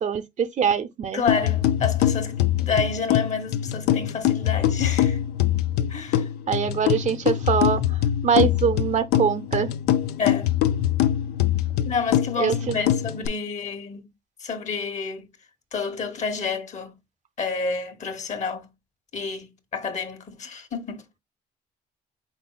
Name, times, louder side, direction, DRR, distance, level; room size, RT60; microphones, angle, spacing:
voice 1, 0.0-1.2 6.5-9.7 12.4-12.8, right 7 dB, 50° right, 0.7 m, -23 dB
voice 2, 1.1-5.2 5.9-6.3 10.2-10.5 11.8-14.0 14.4-15.3 15.7-17.0 17.4-18.7 19.1-21.0, left 5 dB, 45° left, 1.2 m, -29 dB
sound 1, 1.3-13.3, left 12 dB, 90° left, 0.5 m, -23 dB
5.2 x 4.1 x 2.2 m
cardioid pair, 90°, 16 cm